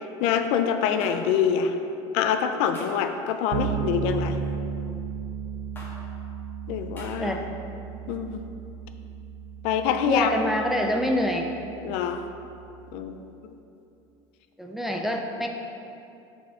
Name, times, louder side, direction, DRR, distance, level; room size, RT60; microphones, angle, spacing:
voice 1, 0.2-1.8 2.1-4.4 6.7-7.4 8.1-8.5 9.6-10.3 11.8-12.2 12.9-13.1, left 8 dB, 65° left, 7 dB, 0.4 m, -25 dB
sound 1, 1.0-1.2 2.7-3.0 4.3-4.6 5.8-5.9 7.0-7.1, left 1 dB, 20° left, 1.3 m, -44 dB
Bass guitar, 3.5-13.2, right 6 dB, 85° right, 0.5 m, -35 dB
voice 2, 9.9-11.5 14.6-15.5, equal, ahead, 1 dB, 0.3 m, -26 dB
6.9 x 4.3 x 4.7 m, 2.7 s
cardioid pair, 165°, 12 cm